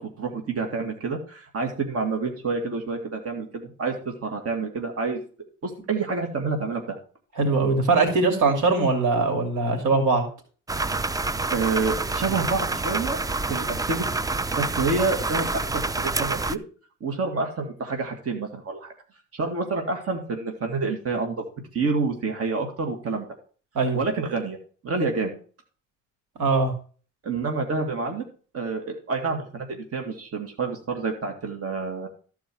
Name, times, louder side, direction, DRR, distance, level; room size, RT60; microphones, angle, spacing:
voice 1, 0.0-3.9 4.2-5.2 5.6-7.0 11.5-13.2 13.5-14.1 14.5-16.6 17.0-18.9 19.3-21.4 21.7-23.3 23.9-24.6 24.8-25.4 27.2-28.2 28.5-32.1, right 4 dB, 50° right, 3 dB, 2.3 m, -28 dB
voice 2, 7.4-10.2 23.7-24.0 26.4-26.7, right 3 dB, 85° right, 5 dB, 2.8 m, -21 dB
sound 1, 10.7-16.6, right 3 dB, 10° right, 0.4 m, -27 dB
13.5 x 4.7 x 6.1 m, 0.40 s
cardioid pair, 90°, 30 cm